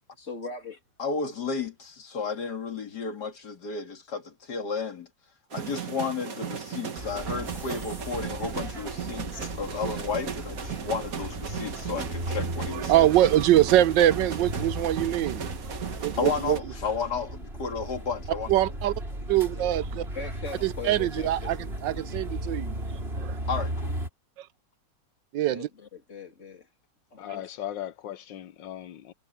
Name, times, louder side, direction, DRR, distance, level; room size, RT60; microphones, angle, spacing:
voice 1, 0.2-0.8 19.5-19.7 20.1-21.6 25.5-26.7 27.1-27.5, left 4 dB, 40° left, 3.2 m, -40 dB
voice 2, 1.0-5.1 5.5-13.1 16.2-18.6 23.5-23.9, left 5 dB, 65° left, 2.7 m, -33 dB
sound 1, 5.5-16.6, right 7 dB, 50° right, 1.8 m, -36 dB
sound 2, 7.0-24.1, right 1 dB, 30° right, 6.8 m, -36 dB
voice 3, 12.7-15.5 16.0-16.6 18.5-18.9 19.3-20.0 20.6-22.7 23.2-23.4 25.3-25.7, right 13 dB, 85° right, 1.3 m, -23 dB
voice 4, 27.2-29.1, left 12 dB, 80° left, 1.5 m, -37 dB
omnidirectional pair, 2.0 m